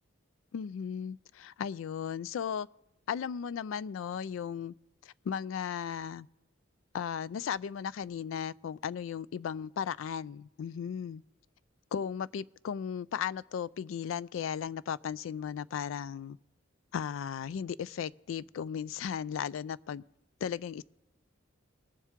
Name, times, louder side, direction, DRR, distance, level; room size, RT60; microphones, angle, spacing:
voice 1, 0.5-2.7 3.1-4.7 5.0-6.3 6.9-11.2 11.9-16.4 16.9-20.0 20.4-20.8, left 7 dB, 75° left, 0.3 m, -36 dB
20.5 x 7.3 x 3.6 m
head